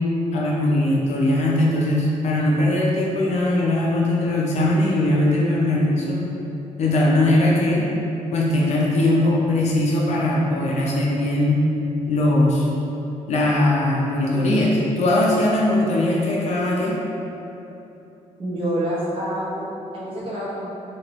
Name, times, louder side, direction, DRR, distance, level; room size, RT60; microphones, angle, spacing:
voice 1, 0.3-6.2 6.8-7.9 8.3-11.6 12.1-12.7 13.3-17.0, left 1 dB, 60° left, -4 dB, 0.6 m, -20 dB
voice 2, 18.4-20.7, right 1 dB, 45° right, -8 dB, 0.9 m, -27 dB
3.0 x 2.5 x 3.0 m, 3.0 s
cardioid pair, 130°, 13 cm